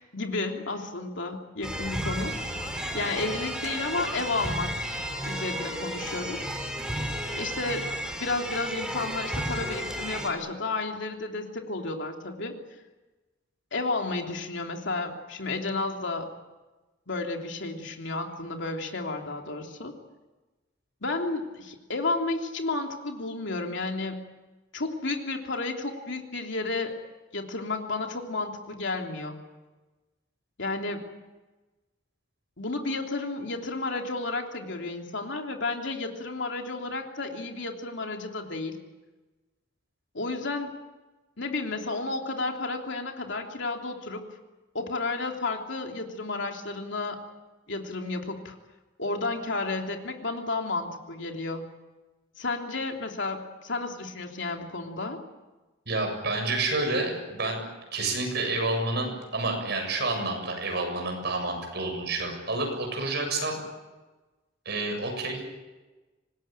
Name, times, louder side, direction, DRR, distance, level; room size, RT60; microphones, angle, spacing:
voice 1, 0.1-2.3 2.9-4.7 5.2-6.4 7.3-7.9 8.2-12.6 13.7-16.3 17.1-19.9 21.0-24.2 24.7-26.9 27.3-29.4 30.6-31.0 32.6-38.7 40.1-40.7 41.4-44.2 44.7-47.2 47.7-48.5 49.0-51.6 52.4-55.2, left 3 dB, 65° left, 3 dB, 3.2 m, -32 dB
sound 1, 1.6-10.3, equal, 5° right, 4.0 m, -33 dB
voice 2, 55.9-57.6 57.9-63.6 64.7-65.5, right 2 dB, 60° right, 3 dB, 7.5 m, -29 dB
25.5 x 20.0 x 9.1 m, 1.2 s
head